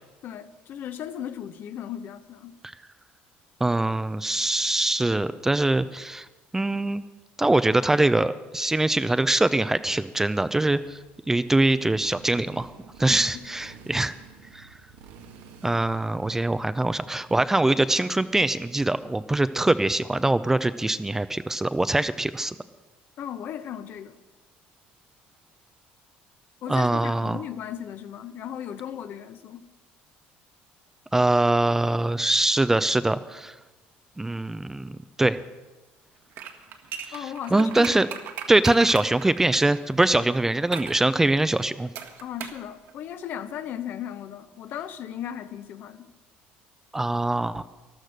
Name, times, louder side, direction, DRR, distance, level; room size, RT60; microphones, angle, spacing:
voice 1, 0.2-2.5 13.1-13.4 23.2-24.1 26.6-29.6 37.1-38.1 42.2-46.1, left 9 dB, 55° left, 11 dB, 0.9 m, -36 dB
voice 2, 3.6-6.3 6.5-7.0 7.4-11.0 11.3-12.7 13.0-14.2 14.5-14.7 15.6-22.6 26.7-27.4 31.1-33.5 34.2-35.4 37.1-38.1 38.5-41.9 46.9-47.6, right 2 dB, 10° right, 13 dB, 0.5 m, -23 dB
Motorcycle, 10.8-19.4, right 6 dB, 85° right, 1.5 m, -51 dB
sound 1, 36.3-40.1 40.7-41.0 42.0-42.6 42.9-43.0, right 8 dB, 65° right, 1.6 m, -37 dB
13.0 x 12.0 x 6.5 m, 1.1 s
cardioid pair, 105°, 4 cm